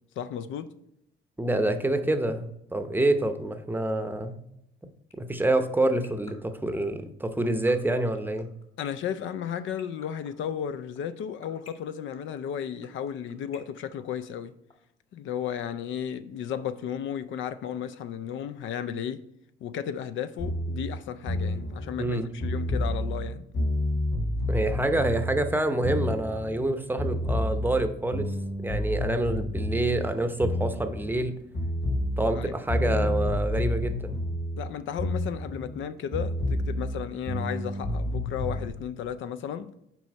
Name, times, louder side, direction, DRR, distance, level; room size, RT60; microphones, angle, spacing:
voice 1, 0.2-0.7 8.8-14.5 15.1-19.3 19.6-23.5 32.3-32.5 34.6-39.7, left 9 dB, 75° left, 0.4 m, -34 dB
voice 2, 1.4-4.4 5.2-8.5 22.0-22.3 24.5-28.3 28.6-31.4 32.2-34.2, right 1 dB, 10° right, 0.6 m, -27 dB
sound 1, 5.1-14.7, left 3 dB, 35° left, 1.6 m, -49 dB
sound 2, 20.4-26.7 27.0-31.3 31.5-35.8 36.1-38.7, left 1 dB, 55° left, 1.1 m, -30 dB
6.1 x 4.6 x 4.2 m
cardioid pair, 90°, 20 cm